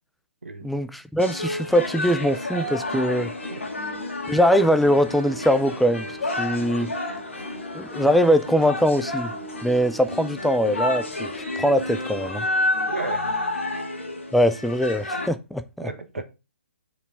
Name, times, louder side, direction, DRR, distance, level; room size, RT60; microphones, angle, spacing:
voice 1, 0.6-3.3 4.3-6.1 6.4-6.9 7.7-9.3 9.6-11.3 11.6-12.4 14.3-15.9, equal, ahead, 0.4 m, -21 dB
sound 1, 1.2-15.3, left 2 dB, 80° left, 1.7 m, -30 dB
sound 2, 3.0-13.0, right 4 dB, 20° right, 1.0 m, -45 dB
voice 2, 12.8-13.4 15.8-16.2, right 3 dB, 80° right, 1.4 m, -33 dB
8.0 x 4.8 x 3.5 m
figure-of-eight pair, 130°, 7 cm